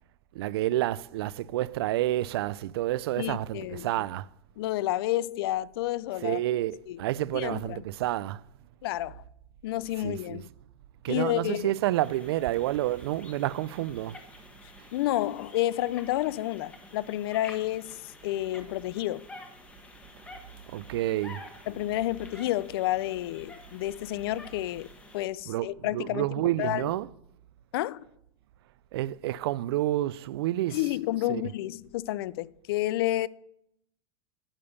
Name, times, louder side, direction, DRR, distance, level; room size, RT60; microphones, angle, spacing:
voice 1, 0.3-4.3 6.2-8.4 10.0-10.4 11.0-14.2 20.7-21.5 25.5-27.1 28.9-30.8 31.3-31.4, right 15 dB, 90° right, 0.4 m, -29 dB
voice 2, 3.2-3.9 4.6-6.4 6.9-7.0 7.3-7.8 8.8-9.2 9.6-10.5 11.1-11.7 14.9-19.2 21.7-24.9 25.1-26.3 26.6-26.9 27.7-28.0 30.7-33.3, left 15 dB, 75° left, 0.4 m, -30 dB
sound 1, 11.9-25.3, left 2 dB, 10° left, 1.2 m, -50 dB
8.8 x 6.9 x 6.8 m
supercardioid pair, 160°, 13 cm